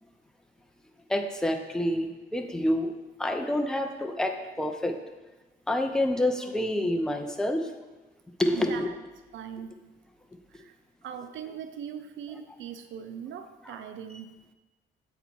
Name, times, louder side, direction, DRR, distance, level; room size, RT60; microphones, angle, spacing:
voice 1, 1.1-2.1 2.3-2.9 3.2-5.0 5.7-7.7 8.4-8.9 13.7-13.8, left 1 dB, 5° left, 4 dB, 0.6 m, -27 dB
voice 2, 8.5-9.0 9.3-9.8 10.5-10.7 11.0-14.3, right 8 dB, 75° right, 9 dB, 0.5 m, -40 dB
8.1 x 4.1 x 4.5 m, 1.2 s
cardioid pair, 90°, 20 cm